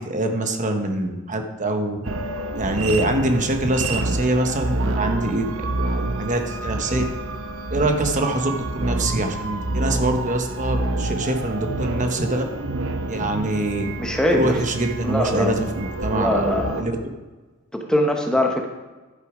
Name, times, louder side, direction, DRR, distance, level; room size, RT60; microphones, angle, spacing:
voice 1, 0.0-2.0 2.6-5.7 6.2-7.1 7.7-12.4 13.1-13.9 14.3-16.9, right 1 dB, 35° right, 4 dB, 1.1 m, -24 dB
sound 1, 2.0-16.8, right 2 dB, 70° right, 0.8 m, -28 dB
voice 2, 14.0-14.6 15.0-15.7 16.1-16.8 17.7-18.7, left 1 dB, 5° left, 2 dB, 1.0 m, -22 dB
11.0 x 6.9 x 5.0 m, 1.3 s
head